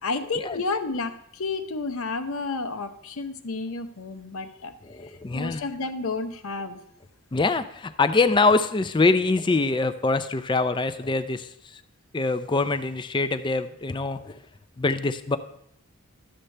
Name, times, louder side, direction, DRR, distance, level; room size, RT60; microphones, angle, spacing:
voice 1, 0.0-4.7 5.3-6.8, left 3 dB, 70° left, 8 dB, 0.8 m, -31 dB
voice 2, 4.8-5.6 7.3-11.8 12.1-14.4 14.8-15.4, left 3 dB, 20° left, 11 dB, 0.4 m, -24 dB
12.5 x 7.9 x 3.3 m, 0.71 s
head